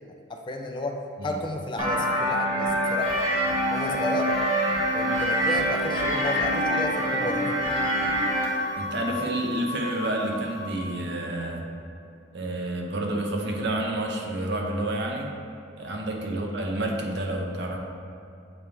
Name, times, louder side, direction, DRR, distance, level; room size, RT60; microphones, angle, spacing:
voice 1, 0.1-3.3 3.7-4.4 4.9-7.8 16.3-16.5, left 1 dB, 25° left, 3 dB, 0.4 m, -33 dB
sound 1, 1.8-8.4, equal, 30° right, 1.2 m, -25 dB
sound 2, 3.0-11.1, equal, 45° left, 1.3 m, -37 dB
voice 2, 8.8-11.6 12.3-15.3 15.8-17.8, right 1 dB, 60° right, 1 dB, 0.8 m, -29 dB
7.3 x 4.7 x 3.4 m, 2.6 s
head